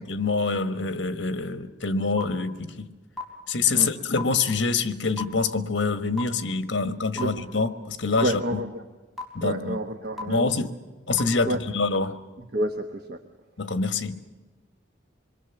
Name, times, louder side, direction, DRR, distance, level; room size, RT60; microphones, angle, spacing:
voice 1, 0.0-2.9 3.5-8.4 9.3-9.8 10.2-10.7 11.1-12.2 13.6-14.2, left 4 dB, 65° left, 1.3 m, -26 dB
sound 1, 2.2-2.3 3.2-3.3 4.2-4.3 5.2-5.3 6.2-6.3 7.2-7.3 8.2-8.3 9.2-9.3 10.2-10.3 11.2-11.3, left 2 dB, ahead, 4.1 m, -31 dB
voice 2, 8.2-8.8 9.4-10.5 11.4-11.6 12.5-13.2, right 1 dB, 55° right, 1.2 m, -29 dB
26.0 x 22.0 x 7.0 m
head